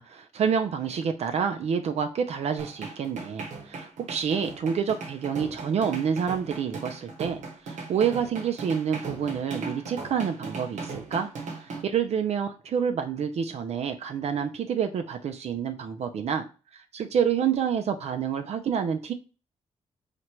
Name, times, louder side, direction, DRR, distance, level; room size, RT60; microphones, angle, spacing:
voice 1, 0.0-11.3 11.6-16.4 16.7-19.1, right 7 dB, 65° right, 6 dB, 0.4 m, -28 dB
sound 1, 2.6-11.8, right 4 dB, 85° right, 0.9 m, -38 dB
3.0 x 2.5 x 4.3 m, 0.34 s
cardioid pair, 110°, 12 cm